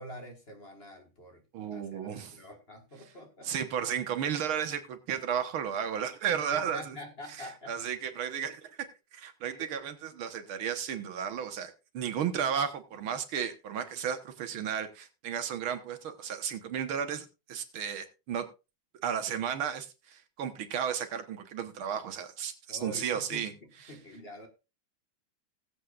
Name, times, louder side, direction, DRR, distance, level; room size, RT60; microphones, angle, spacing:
voice 1, 0.0-1.4 1.7-3.5 6.3-7.7 9.5-9.7 12.2-12.5 22.7-24.5, left 1 dB, 30° left, 4 dB, 1.6 m, -46 dB
voice 2, 1.5-2.4 3.4-7.0 7.3-8.8 9.1-18.5 19.0-23.5 23.9-24.0, right 8 dB, 85° right, 8 dB, 2.0 m, -34 dB
19.0 x 7.8 x 2.4 m, 0.28 s
omnidirectional pair, 2.2 m